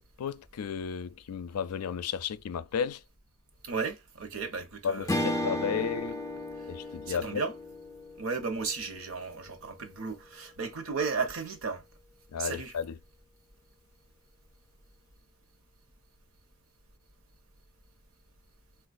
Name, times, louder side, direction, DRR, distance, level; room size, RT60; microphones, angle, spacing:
voice 1, 0.0-3.0 4.8-6.2 6.7-7.4 12.3-13.0, left 7 dB, 85° left, 0.4 m, -33 dB
voice 2, 3.6-5.7 7.1-7.5 8.2-11.8 12.4-12.7, right 5 dB, 65° right, 0.9 m, -35 dB
Strum, 5.1-9.7, left 1 dB, 15° left, 0.4 m, -35 dB
4.0 x 2.3 x 2.5 m
head